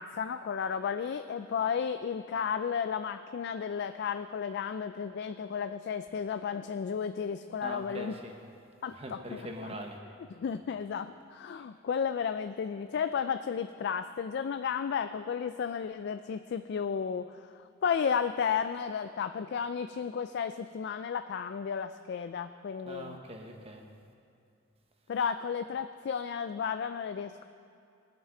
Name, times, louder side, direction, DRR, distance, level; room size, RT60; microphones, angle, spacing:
voice 1, 0.0-8.1 8.8-9.4 10.4-23.2 25.1-27.4, left 7 dB, 55° left, 9 dB, 0.3 m, -33 dB
voice 2, 7.6-8.4 8.9-10.0 11.5-11.7 22.9-23.8, right 1 dB, 30° right, 3 dB, 1.1 m, -42 dB
20.0 x 6.7 x 4.8 m, 2.5 s
head